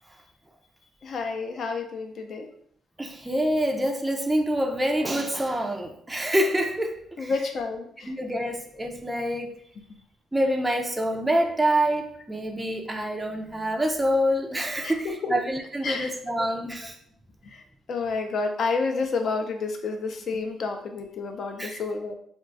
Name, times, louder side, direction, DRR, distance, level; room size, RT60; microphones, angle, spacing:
voice 1, 1.0-2.5 7.2-8.1 14.8-15.4 15.8-16.1 17.4-22.1, left 4 dB, 60° left, 4 dB, 0.5 m, -30 dB
voice 2, 3.0-7.3 8.1-9.5 10.3-16.9 21.6-21.8, equal, 10° right, 2 dB, 0.4 m, -26 dB
2.3 x 2.2 x 3.8 m, 0.64 s
cardioid pair, 90°, 0 cm